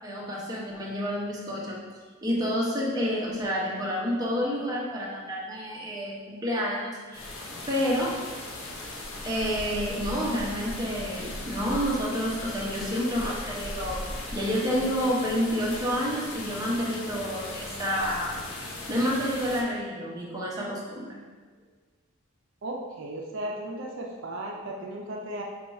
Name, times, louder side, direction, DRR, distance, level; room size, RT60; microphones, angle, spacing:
voice 1, 0.0-1.8 2.2-7.2 7.7-8.2 9.2-14.0 14.3-18.4 18.9-21.2, equal, 20° right, -5 dB, 0.7 m, -29 dB
sound 1, 7.1-19.6, left 2 dB, 80° left, 0.6 m, -38 dB
voice 2, 22.6-25.4, right 1 dB, 60° right, -1 dB, 0.4 m, -35 dB
4.4 x 2.3 x 4.2 m, 1.5 s
head